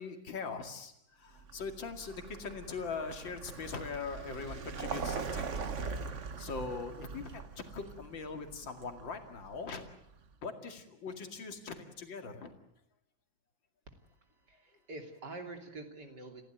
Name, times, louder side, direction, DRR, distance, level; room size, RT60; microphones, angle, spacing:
voice 1, 0.0-9.9 10.4-12.5, left 4 dB, 75° left, 5 dB, 3.1 m, -41 dB
Vehicle, 1.4-10.2, right 5 dB, 45° right, 1.4 m, -42 dB
voice 2, 14.5-16.4, right 2 dB, 60° right, 4 dB, 3.6 m, -46 dB
29.5 x 16.0 x 9.1 m, 0.81 s
omnidirectional pair, 2.1 m